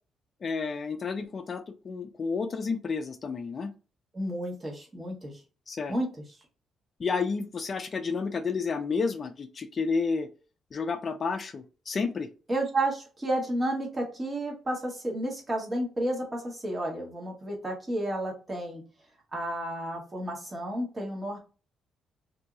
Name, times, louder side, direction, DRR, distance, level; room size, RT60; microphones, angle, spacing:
voice 1, 0.4-3.7 5.7-5.9 7.0-10.3 10.7-12.3, left 4 dB, 40° left, 7 dB, 0.4 m, -31 dB
voice 2, 4.1-5.4 5.9-6.1 12.5-18.8 19.3-21.4, right 1 dB, 25° right, 0 dB, 1.2 m, -31 dB
2.7 x 2.7 x 2.4 m, 0.34 s
cardioid pair, 90°, 0 cm